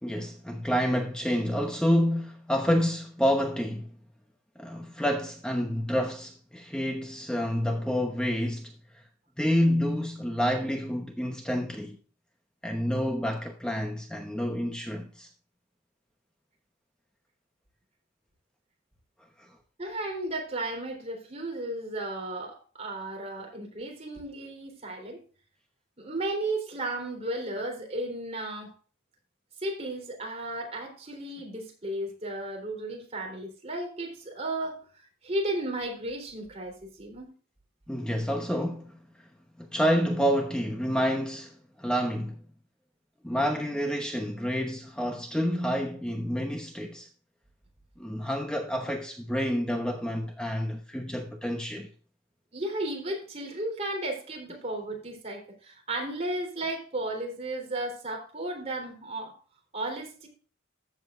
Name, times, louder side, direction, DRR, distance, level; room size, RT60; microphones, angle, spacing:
voice 1, 0.0-3.9 4.6-9.0 9.4-12.0 12.6-15.3 19.4-19.5 37.9-39.3 39.6-42.4 43.2-47.1 48.0-51.9, equal, 5° left, 0.9 m, -28 dB
voice 2, 19.8-25.2 26.0-28.7 29.6-37.3 52.5-59.3 59.7-60.3, right 1 dB, 30° right, 3.5 m, -34 dB
14.5 x 7.7 x 2.5 m
head